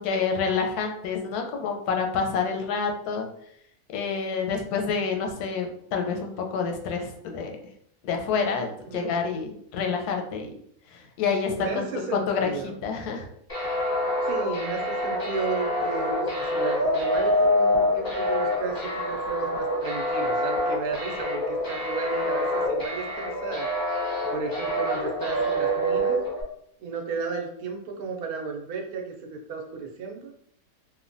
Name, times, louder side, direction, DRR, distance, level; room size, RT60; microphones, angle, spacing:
voice 1, 0.0-3.3 3.9-7.6 8.0-10.5 10.9-11.8 12.1-12.5 12.8-13.3 13.6-13.8, left 5 dB, 90° left, 3 dB, 1.1 m, -28 dB
voice 2, 11.5-12.8 14.2-23.7 24.3-26.2 26.8-30.3, right 5 dB, 75° right, 1 dB, 1.1 m, -34 dB
sound 1, 13.5-26.4, left 1 dB, 20° left, 0.6 m, -26 dB
3.2 x 2.1 x 2.5 m, 0.68 s
omnidirectional pair, 1.6 m